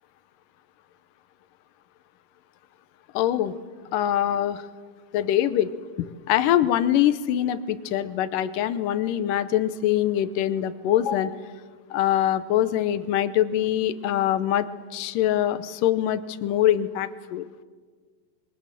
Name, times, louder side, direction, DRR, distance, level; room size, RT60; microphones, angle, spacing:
voice 1, 3.1-3.5 3.9-4.7 5.1-5.7 6.0-11.4 11.9-14.7 14.9-17.5, left 11 dB, 75° left, 13 dB, 2.3 m, -23 dB
26.5 x 23.0 x 7.5 m, 1.5 s
omnidirectional pair, 4.2 m